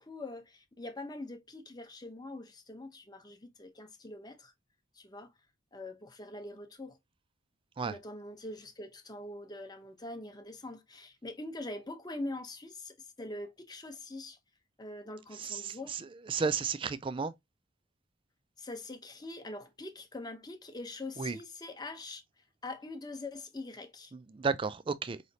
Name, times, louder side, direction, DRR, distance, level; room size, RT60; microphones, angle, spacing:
voice 1, 0.0-4.5 4.9-5.3 5.7-7.0 7.8-14.4 14.8-16.0 18.6-22.2 22.6-24.1, left 2 dB, 20° left, 0.7 m, -43 dB
voice 2, 15.3-17.3 21.2-21.4 24.1-25.2, right 5 dB, 25° right, 0.3 m, -33 dB
4.8 x 3.2 x 2.7 m
head